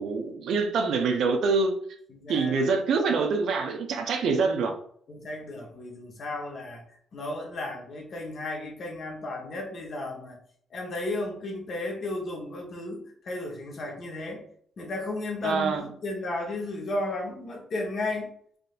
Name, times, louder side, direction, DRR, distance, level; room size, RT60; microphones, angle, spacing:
voice 1, 0.0-1.7 2.3-4.8 15.4-15.8, right 4 dB, 70° right, 0.5 m, -25 dB
voice 2, 2.1-2.6 5.1-6.8 7.1-10.4 10.7-14.4 14.8-18.3, left 2 dB, 55° left, 1.0 m, -34 dB
3.5 x 2.6 x 2.4 m
cardioid pair, 90°, 0 cm